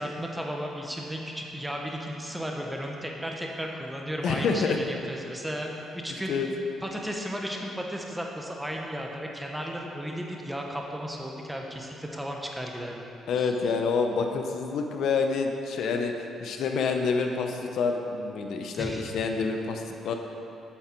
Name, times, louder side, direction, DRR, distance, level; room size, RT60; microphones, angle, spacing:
voice 1, 0.0-6.3 6.8-13.1 13.4-13.5 18.7-19.0, equal, 5° right, 0 dB, 1.2 m, -34 dB
voice 2, 4.2-4.8 6.3-6.5 13.3-16.1 16.4-20.1, left 5 dB, 75° left, 4 dB, 0.8 m, -27 dB
9.2 x 6.6 x 4.6 m, 2.8 s
cardioid pair, 90°, 0 cm